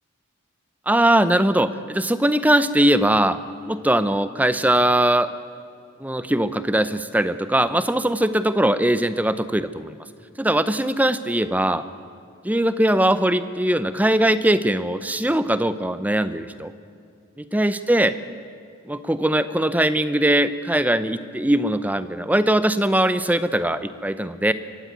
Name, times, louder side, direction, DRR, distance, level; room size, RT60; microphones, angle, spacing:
voice 1, 0.9-3.4 3.6-5.3 6.0-9.9 10.4-11.8 12.4-16.7 17.4-18.1 18.9-24.5, right 1 dB, 5° right, 13 dB, 0.6 m, -20 dB
24.0 x 15.5 x 9.4 m, 2.4 s
head